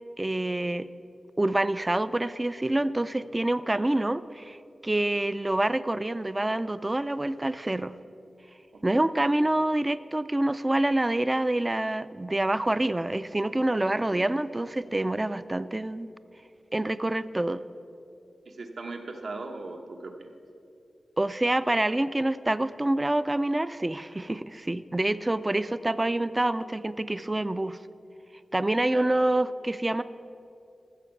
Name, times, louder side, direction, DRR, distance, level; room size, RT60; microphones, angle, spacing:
voice 1, 0.2-0.9 1.4-7.9 8.8-16.1 16.7-17.6 21.2-27.8 28.5-30.0, right 1 dB, 20° right, 14 dB, 0.3 m, -27 dB
voice 2, 18.4-20.4 28.9-29.2, right 3 dB, 75° right, 3 dB, 1.0 m, -39 dB
14.0 x 7.0 x 5.9 m, 2.6 s
wide cardioid pair, 80°, 0 cm